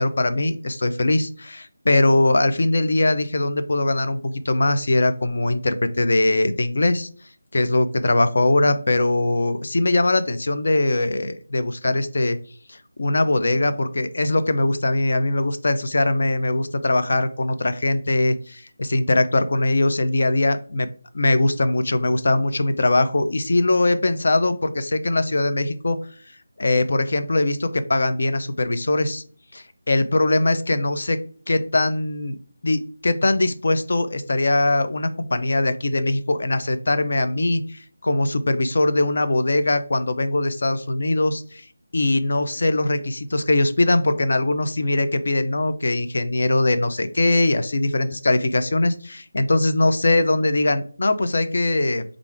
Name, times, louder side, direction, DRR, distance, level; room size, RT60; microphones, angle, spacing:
voice 1, 0.0-7.1 7.5-12.4 12.7-20.9 21.1-26.0 26.6-29.2 29.5-31.2 31.5-32.4 32.6-41.6 41.9-52.0, left 2 dB, 55° left, 10 dB, 0.5 m, -21 dB
3.5 x 2.5 x 4.5 m, 0.43 s
figure-of-eight pair, 175°, 0 cm